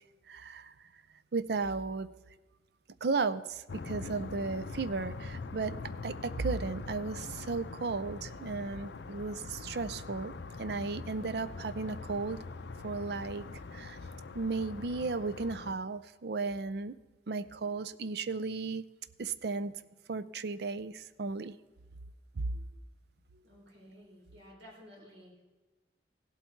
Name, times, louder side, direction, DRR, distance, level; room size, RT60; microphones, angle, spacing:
voice 1, 0.3-0.7 1.3-2.1 3.0-5.8 6.0-12.4 12.8-13.4 13.7-14.0 14.3-17.0 17.3-18.8 19.2-19.8 20.1-21.6 22.4-22.5, right 4 dB, 65° right, 14 dB, 0.5 m, -35 dB
sound 1, 3.7-15.7, left 3 dB, 75° left, 0.6 m, -43 dB
voice 2, 23.4-25.3, equal, 85° right, -3 dB, 4.5 m, -54 dB
16.5 x 8.0 x 4.5 m, 1.2 s
head